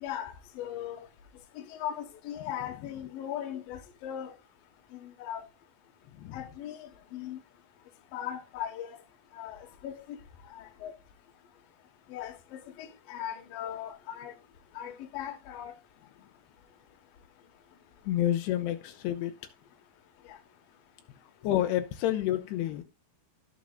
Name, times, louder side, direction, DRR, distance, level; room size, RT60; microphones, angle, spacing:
voice 1, 0.0-1.0 1.8-4.3 5.0-5.4 6.3-6.8 7.1-7.4 8.1-9.0 9.4-9.6 9.8-9.9 10.8-10.9 12.1-12.3 13.1-14.3 14.8-15.7, left 10 dB, 65° left, 2.7 m, -38 dB
voice 2, 18.1-19.3 21.4-22.8, left 12 dB, 85° left, 2.7 m, -29 dB
17.5 x 6.1 x 2.3 m
omnidirectional pair, 4.8 m